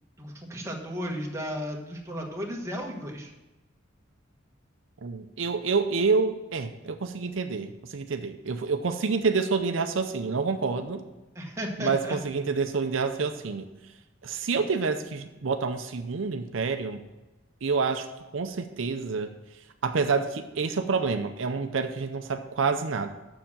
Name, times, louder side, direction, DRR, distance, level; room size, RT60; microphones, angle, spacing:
voice 1, 0.2-3.3 11.3-12.2, equal, 15° right, -1 dB, 1.2 m, -34 dB
voice 2, 5.0-11.0 11.8-13.7 14.2-17.0 17.6-18.1 18.3-19.3 19.8-23.1, right 4 dB, 75° right, 7 dB, 0.6 m, -28 dB
7.0 x 6.5 x 7.3 m, 1.1 s
head